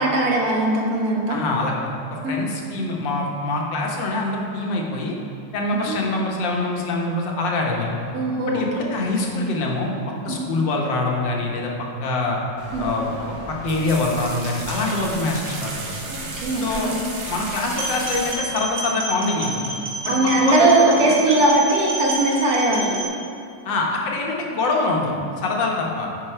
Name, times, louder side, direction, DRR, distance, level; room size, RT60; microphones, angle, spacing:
voice 1, 0.0-1.4 2.2-2.3 5.7-6.0 8.1-8.9 10.3-10.4 12.7-12.8 16.1-17.0 20.0-23.0, right 2 dB, 60° right, -2 dB, 1.6 m, -20 dB
voice 2, 1.3-5.2 5.5-8.0 8.5-9.9 10.3-11.7 12.0-12.4 12.8-13.1 13.5-15.9 16.6-16.9 17.3-19.7 20.1-21.1 23.7-26.1, left 2 dB, 85° left, -1 dB, 1.8 m, -24 dB
sound 1, 12.6-18.3, right 2 dB, 85° right, 1.9 m, -34 dB
sound 2, 17.8-23.1, right 2 dB, 30° right, 2.1 m, -29 dB
9.7 x 5.4 x 4.4 m, 2.5 s
omnidirectional pair, 1.9 m